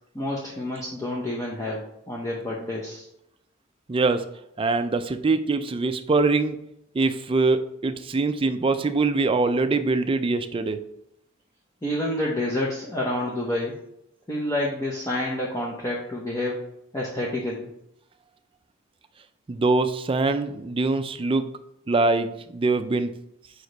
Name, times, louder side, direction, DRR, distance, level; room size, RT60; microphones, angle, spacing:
voice 1, 0.1-3.1 11.8-13.8 14.3-16.6 16.9-17.7, left 1 dB, 15° left, -4 dB, 0.8 m, -28 dB
voice 2, 3.9-4.3 4.6-6.6 6.9-10.8 19.5-21.5 21.9-23.1, right 3 dB, 25° right, 9 dB, 0.4 m, -23 dB
5.1 x 4.9 x 3.9 m, 0.79 s
head